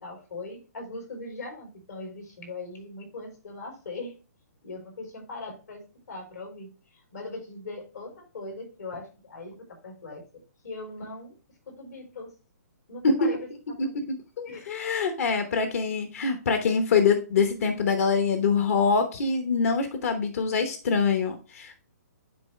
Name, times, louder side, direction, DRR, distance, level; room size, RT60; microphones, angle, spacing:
voice 1, 0.0-4.1 4.6-5.8 6.1-11.4 11.7-12.3 12.9-13.4 13.8-14.1 14.5-14.8, left 3 dB, 75° left, 1 dB, 4.2 m, -40 dB
voice 2, 14.4-21.8, left 5 dB, 55° left, 7 dB, 1.1 m, -24 dB
9.9 x 3.9 x 3.2 m, 0.34 s
hypercardioid pair, 160°, 9 cm